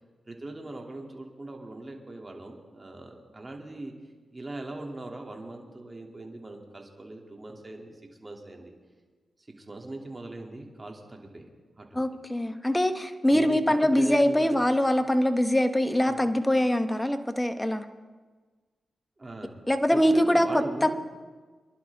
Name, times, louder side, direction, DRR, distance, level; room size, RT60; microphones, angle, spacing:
voice 1, 0.3-3.9 4.3-8.7 9.6-11.4 11.8-12.1 13.3-14.6 16.1-16.3 19.2-19.6 19.9-20.9, right 2 dB, 30° right, 1 dB, 2.7 m, -40 dB
voice 2, 11.9-17.8 19.7-20.9, left 1 dB, 15° left, 8 dB, 1.3 m, -23 dB
24.5 x 11.5 x 3.6 m, 1.4 s
cardioid pair, 50°, 0 cm